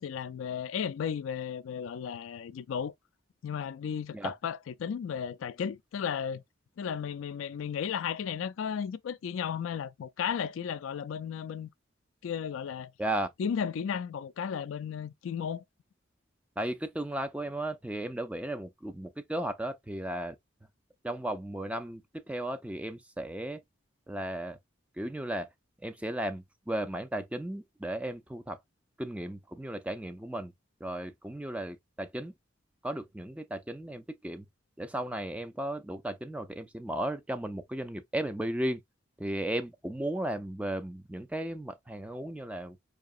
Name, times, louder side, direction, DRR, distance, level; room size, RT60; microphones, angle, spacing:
voice 1, 0.0-2.9 3.4-6.4 6.8-11.7 12.2-12.9 13.4-15.6, left 7 dB, 80° left, 0.3 m, -34 dB
voice 2, 16.6-20.4 21.0-23.6 24.1-24.6 25.0-25.5 25.8-28.6 29.0-30.5 30.8-32.3 32.8-34.5 34.8-38.8 39.2-42.8, right 1 dB, 5° right, 0.4 m, -35 dB
4.8 x 2.8 x 2.4 m
head